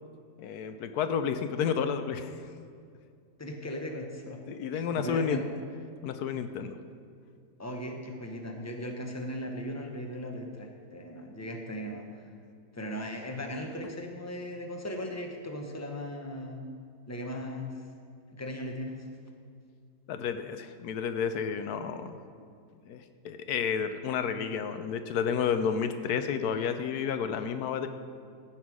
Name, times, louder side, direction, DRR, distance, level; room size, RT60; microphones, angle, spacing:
voice 1, 0.4-2.3 4.5-5.4 6.0-6.7 20.1-22.2 22.9-27.9, left 7 dB, 75° left, 9 dB, 1.1 m, -31 dB
voice 2, 3.4-4.4 4.7-5.4 7.6-12.2 12.7-16.6 17.1-17.8 18.3-19.1, equal, 15° left, 2 dB, 0.7 m, -38 dB
15.0 x 5.8 x 4.8 m, 2.3 s
omnidirectional pair, 1.7 m